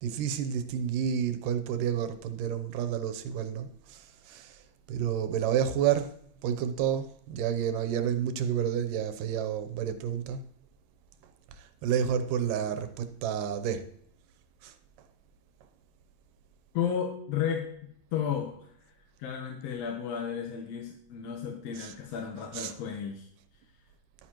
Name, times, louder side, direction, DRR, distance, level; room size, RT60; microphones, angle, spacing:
voice 1, 0.0-4.6 4.9-6.1 6.4-10.4 11.6-13.9 14.6-14.7 21.7-21.9 22.5-22.7, right 9 dB, 85° right, 2.4 m, -30 dB
voice 2, 16.7-17.7 18.1-18.7 19.2-23.3, left 8 dB, 65° left, 1.8 m, -33 dB
11.5 x 9.4 x 3.0 m
omnidirectional pair, 3.7 m